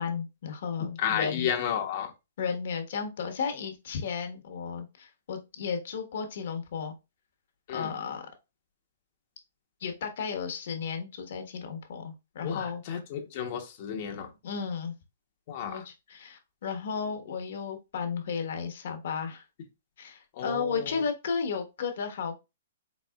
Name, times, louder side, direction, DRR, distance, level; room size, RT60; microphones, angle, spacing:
voice 1, 0.0-1.5 2.4-6.9 7.7-8.3 9.8-12.8 14.4-14.9 15.6-19.4 20.0-22.3, left 6 dB, 60° left, 1.2 m, -34 dB
voice 2, 1.0-2.1 7.7-7.9 12.4-14.3 15.5-15.8 20.3-21.0, left 8 dB, 45° left, 1.0 m, -32 dB
4.1 x 4.1 x 2.3 m
hypercardioid pair, 150°, 0 cm